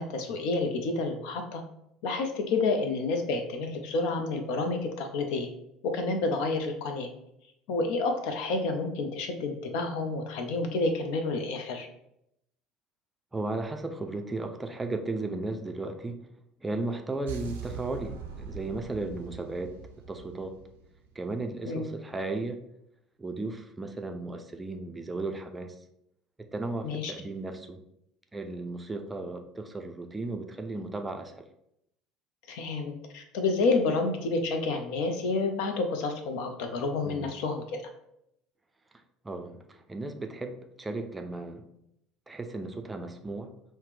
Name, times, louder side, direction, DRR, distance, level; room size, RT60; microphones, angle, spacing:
voice 1, 0.0-1.6 2.0-5.5 5.8-7.1 7.7-11.9 21.7-21.9 26.8-27.1 32.5-37.8, left 3 dB, 60° left, 6 dB, 0.5 m, -29 dB
voice 2, 13.3-16.3 16.6-19.8 20.1-20.6 21.2-22.6 23.2-25.8 26.5-27.8 28.3-31.5 37.0-37.3 39.2-41.7 42.3-43.5, right 2 dB, 15° right, 6 dB, 0.4 m, -35 dB
sound 1, 17.3-21.3, right 5 dB, 70° right, 0.5 m, -42 dB
5.6 x 2.1 x 3.2 m, 0.79 s
figure-of-eight pair, 65°, 0 cm